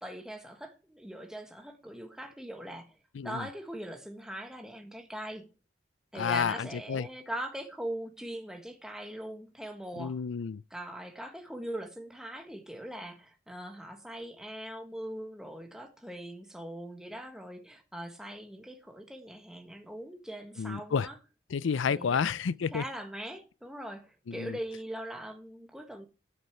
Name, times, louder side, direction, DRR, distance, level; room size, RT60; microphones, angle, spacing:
voice 1, 0.0-3.0 3.2-5.5 6.1-10.2 10.7-21.2 21.9-22.2 22.7-26.0, right 1 dB, 5° right, 1.4 m, -41 dB
voice 2, 3.1-3.5 6.1-7.1 10.0-10.6 20.6-21.1 21.5-22.8 24.3-24.6, left 6 dB, 80° left, 0.4 m, -30 dB
13.0 x 6.8 x 4.6 m
head